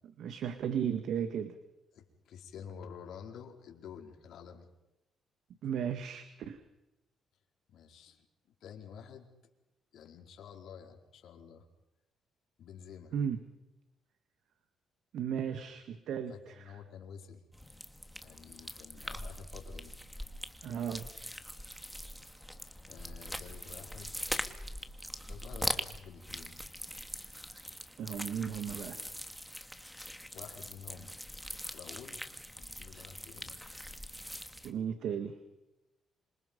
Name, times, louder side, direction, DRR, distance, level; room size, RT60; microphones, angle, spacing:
voice 1, 0.2-1.6 5.6-6.6 13.1-13.4 15.1-16.6 20.6-21.1 28.0-29.0 34.6-35.4, right 8 dB, 75° right, 9 dB, 1.8 m, -35 dB
voice 2, 1.9-4.7 7.7-8.2 8.6-9.3 9.9-11.7 12.6-13.1 16.3-17.4 18.2-19.9 22.9-24.2 25.3-26.6 30.3-31.1 31.7-32.2 32.5-33.6, left 7 dB, 75° left, 3 dB, 4.5 m, -50 dB
sound 1, 17.5-34.7, equal, ahead, 2.1 m, -42 dB
27.5 x 26.0 x 5.4 m, 0.96 s
cardioid pair, 90°, 0 cm